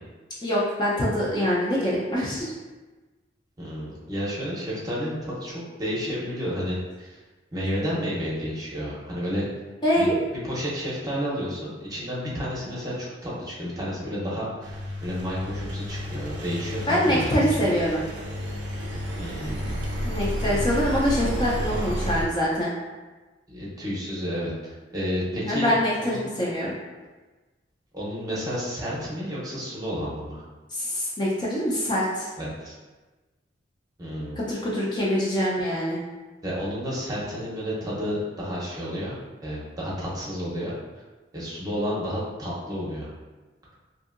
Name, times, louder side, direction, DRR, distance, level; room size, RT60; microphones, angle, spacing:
voice 1, 0.4-2.5 9.8-10.1 16.9-18.0 20.0-22.7 25.4-26.7 30.7-32.3 34.4-36.0, equal, 25° left, -6 dB, 0.5 m, -24 dB
voice 2, 3.6-7.2 7.5-9.5 10.0-10.1 10.4-17.7 19.2-19.8 23.5-24.5 24.9-26.2 27.9-30.4 32.4-32.8 34.0-34.5 36.4-39.2 39.4-40.7 41.3-43.1, equal, 20° right, -7 dB, 0.7 m, -31 dB
Engine, 14.6-22.2, equal, 70° right, 0.4 m, -31 dB
2.7 x 2.6 x 2.4 m, 1.2 s
head